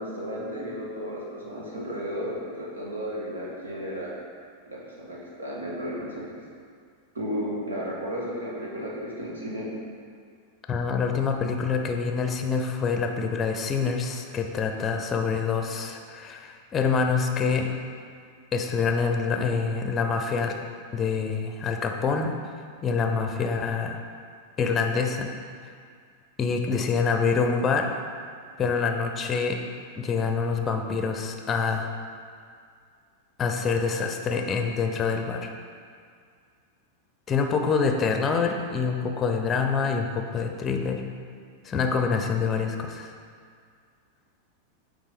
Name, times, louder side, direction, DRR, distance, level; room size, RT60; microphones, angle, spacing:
voice 1, 0.0-4.1 4.7-6.2 7.1-9.7, equal, 70° right, -5 dB, 1.8 m, -33 dB
voice 2, 10.7-17.7 18.5-20.6 20.9-22.4 22.8-24.0 24.6-25.3 26.4-27.9 28.6-29.6 30.0-31.9 33.4-35.5 37.3-41.0 41.6-43.1, left 5 dB, 25° left, 5 dB, 0.7 m, -26 dB
8.9 x 3.8 x 5.0 m, 2.1 s
figure-of-eight pair, 90°, 0 cm